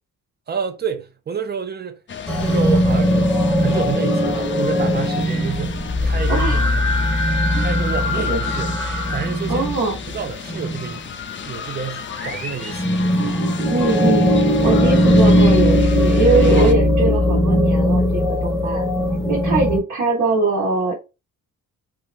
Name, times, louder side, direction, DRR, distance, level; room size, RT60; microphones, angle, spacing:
voice 1, 0.5-2.0 2.4-7.2 7.6-8.8 9.1-9.7 10.1-11.2 11.4-13.5 18.1-18.5, right 6 dB, 30° right, 0.5 m, -29 dB
sound 1, 2.1-16.7, left 6 dB, 35° left, 0.5 m, -33 dB
sound 2, 2.3-10.9 12.0-19.8, left 1 dB, ahead, 0.8 m, -19 dB
voice 2, 6.3-6.8 7.5-7.8 8.1-8.4 9.5-10.0 13.7-14.3 14.6-18.8 19.3-20.9, right 3 dB, 60° right, 1.3 m, -21 dB
2.8 x 2.3 x 3.3 m
cardioid pair, 110°, 33 cm